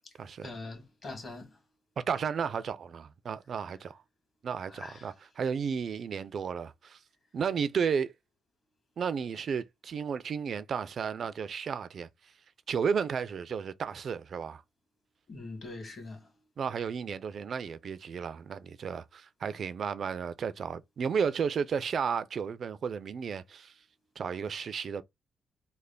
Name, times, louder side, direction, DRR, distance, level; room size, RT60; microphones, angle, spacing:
voice 1, 0.4-1.6 4.7-5.1 15.3-16.4, left 2 dB, 45° left, 1.8 m, -43 dB
voice 2, 2.1-4.0 4.4-7.0 7.3-8.1 9.0-12.1 12.7-14.6 16.6-23.7 24.2-25.0, right 6 dB, 55° right, 0.4 m, -33 dB
3.3 x 2.1 x 3.7 m
cardioid pair, 95°, 0 cm